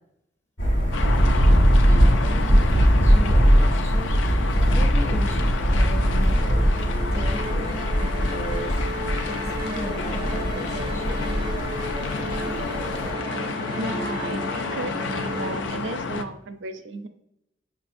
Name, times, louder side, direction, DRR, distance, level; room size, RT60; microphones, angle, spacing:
Thunder, 0.6-13.1, equal, 70° left, 1.4 m, -21 dB
sound 1, 0.9-16.2, left 5 dB, 90° left, 0.4 m, -31 dB
voice 1, 1.7-11.3 12.0-12.3, equal, 35° left, 0 dB, 0.5 m, -37 dB
Musical instrument, 5.9-15.7, right 1 dB, 25° right, 0.4 m, -34 dB
voice 2, 13.8-17.1, right 2 dB, 85° right, 8 dB, 0.4 m, -34 dB
5.5 x 2.7 x 2.5 m, 0.80 s
head